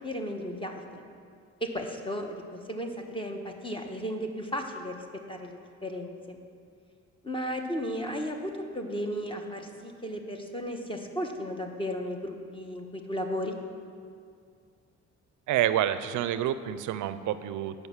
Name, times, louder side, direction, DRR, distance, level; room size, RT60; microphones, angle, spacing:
voice 1, 0.0-0.8 1.6-6.4 7.2-13.6, equal, 15° left, 3 dB, 1.0 m, -35 dB
voice 2, 15.5-17.9, right 11 dB, 80° right, 13 dB, 0.5 m, -28 dB
9.5 x 5.4 x 7.1 m, 2.3 s
cardioid pair, 90°, 30 cm